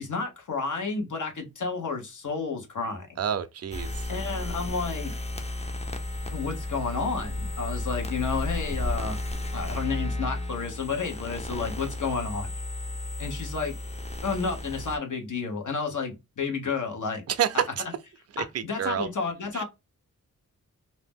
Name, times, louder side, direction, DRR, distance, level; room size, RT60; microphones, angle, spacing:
voice 1, 0.0-3.1 4.1-5.1 6.3-9.2 9.5-12.5 13.2-13.8 14.2-17.2 17.5-17.6 18.4-19.6, left 4 dB, 65° left, 1.1 m, -31 dB
voice 2, 3.2-4.0 17.3-17.8 18.3-19.1 19.5-19.6, right 9 dB, 50° right, 0.4 m, -28 dB
sound 1, 3.7-15.0, left 2 dB, 20° left, 0.6 m, -33 dB
2.7 x 2.1 x 3.4 m
wide cardioid pair, 75°, 33 cm